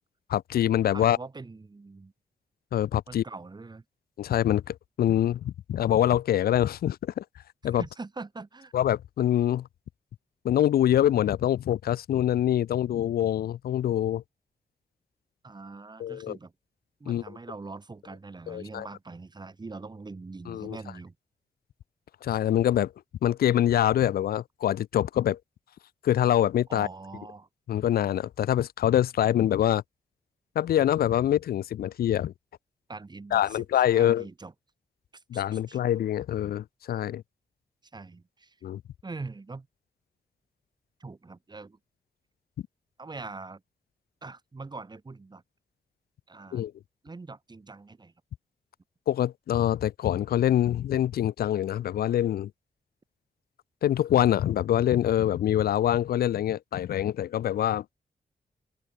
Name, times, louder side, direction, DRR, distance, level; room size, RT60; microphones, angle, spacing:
voice 1, 0.3-1.2 2.7-3.2 4.2-7.2 7.6-7.8 8.7-9.7 10.4-14.2 16.0-16.4 17.1-17.2 18.5-18.9 20.5-20.8 22.2-22.9 23.2-25.4 26.0-26.9 27.7-29.8 30.6-32.3 33.3-34.2 35.3-37.2 38.6-38.8 46.5-46.7 49.1-52.5 53.8-57.8, left 11 dB, 80° left, 0.4 m, -25 dB
voice 2, 0.9-2.1 3.1-3.8 7.8-8.7 15.4-16.5 17.0-21.2 26.7-27.5 32.9-33.7 33.9-34.5 35.1-35.8 37.9-38.6 39.0-39.7 41.0-41.8 43.0-43.6 44.2-45.4 46.3-46.7 47.0-48.1, right 3 dB, 25° right, 2.1 m, -42 dB
open air
wide cardioid pair, 130°, 16 cm